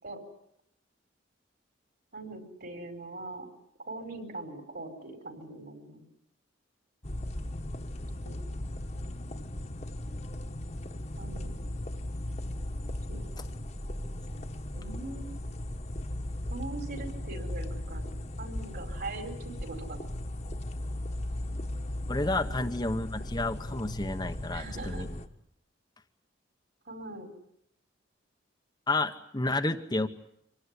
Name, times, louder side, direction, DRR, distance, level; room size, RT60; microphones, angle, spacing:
voice 1, 2.1-3.5 3.8-6.0 8.2-8.4 11.2-11.5 13.1-13.2 14.7-15.4 16.5-20.1 22.5-22.9 24.5-25.1 26.8-27.3, right 2 dB, 55° right, 6 dB, 5.1 m, -42 dB
sound 1, 7.0-25.3, left 1 dB, 35° left, 1.5 m, -37 dB
voice 2, 22.1-25.1 28.9-30.1, left 2 dB, 20° left, 6 dB, 1.1 m, -30 dB
25.0 x 18.5 x 9.8 m, 0.78 s
head